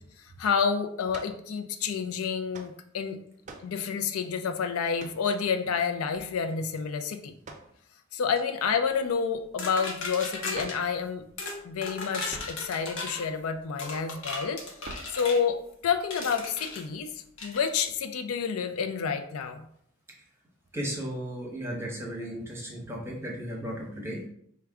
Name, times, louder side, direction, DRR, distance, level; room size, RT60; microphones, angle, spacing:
voice 1, 0.2-3.2 3.6-7.3 8.1-11.2 11.6-19.7, left 6 dB, 90° left, 7 dB, 0.4 m, -29 dB
sound 1, 1.1-1.4 2.5-2.8 3.4-3.8 5.0-5.3 7.4-7.7 10.5-10.9 12.3-12.7 14.8-15.2, right 3 dB, 35° right, 0.4 m, -43 dB
sound 2, 9.6-10.8 11.4-11.6 11.8-13.2 13.8-15.4 16.1-16.8 17.4-17.6, left 3 dB, 60° left, 0.8 m, -36 dB
voice 2, 20.7-24.3, equal, 10° right, -2 dB, 0.8 m, -35 dB
4.7 x 2.2 x 3.4 m, 0.69 s
head